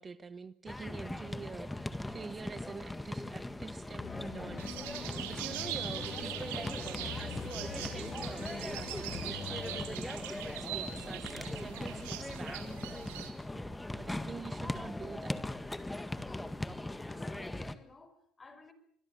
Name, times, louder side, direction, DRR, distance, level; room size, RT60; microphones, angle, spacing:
voice 1, 0.0-12.8 13.5-15.4, right 5 dB, 35° right, 1.1 m, -46 dB
sound 1, 0.7-17.7, left 1 dB, 10° left, 1.8 m, -40 dB
sound 2, 4.0-9.9, left 8 dB, 50° left, 2.6 m, -45 dB
sound 3, 4.6-13.3, right 13 dB, 90° right, 3.0 m, -42 dB
voice 2, 13.4-13.7 16.1-16.6 17.0-18.7, left 3 dB, 30° left, 4.9 m, -54 dB
25.5 x 21.5 x 7.3 m
supercardioid pair, 75°, 0 cm